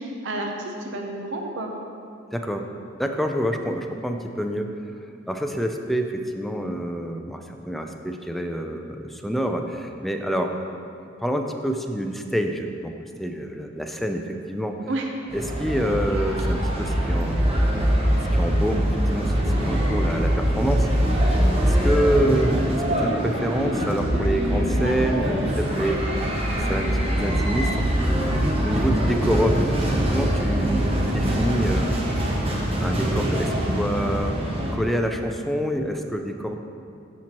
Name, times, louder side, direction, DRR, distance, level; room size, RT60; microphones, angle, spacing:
voice 1, 0.0-1.7 14.9-15.1 30.6-30.7, right 2 dB, 70° right, 2 dB, 0.7 m, -30 dB
voice 2, 2.3-2.7 3.0-4.7 5.3-10.5 11.2-12.9 13.2-14.8 15.3-17.7 18.3-19.3 19.6-20.9 21.6-26.1 26.7-29.7 30.1-31.9 32.8-34.4 34.7-36.6, equal, ahead, 4 dB, 0.4 m, -27 dB
sound 1, 15.3-34.7, equal, 30° right, 0.9 m, -23 dB
13.0 x 4.5 x 2.9 m, 2.5 s
head